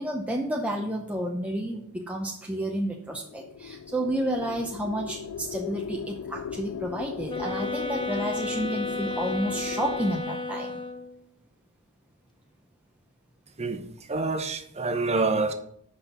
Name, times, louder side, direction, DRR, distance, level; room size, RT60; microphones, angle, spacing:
voice 1, 0.0-10.8, right 1 dB, 5° right, -1 dB, 0.7 m, -31 dB
sound 1, 3.1-10.2, left 7 dB, 80° left, 0.4 m, -39 dB
sound 2, 7.3-11.2, left 3 dB, 20° left, 0.9 m, -32 dB
voice 2, 14.1-15.5, right 3 dB, 30° right, 7 dB, 0.9 m, -26 dB
5.9 x 5.7 x 7.0 m, 0.69 s
head